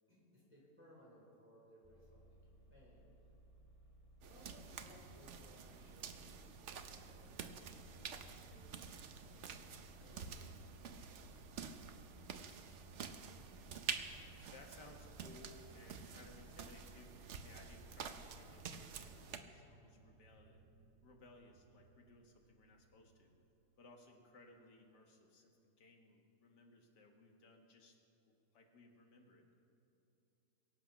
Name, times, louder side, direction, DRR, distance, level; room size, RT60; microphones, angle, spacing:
voice 1, 0.1-3.0 4.2-9.7 10.0-11.6, left 1 dB, 5° right, -5 dB, 3.7 m, -65 dB
sound 1, 1.8-18.7, left 1 dB, 20° left, 2.4 m, -63 dB
sound 2, 4.2-19.4, right 6 dB, 55° right, 0.9 m, -49 dB
voice 2, 14.5-20.7 21.0-23.3 23.8-28.0 28.5-29.4, left 2 dB, 85° left, 2 dB, 2.1 m, -62 dB
sound 3, 17.9-24.4, right 3 dB, 40° right, 3.2 m, -69 dB
22.5 x 8.2 x 5.8 m, 2.8 s
omnidirectional pair, 1.8 m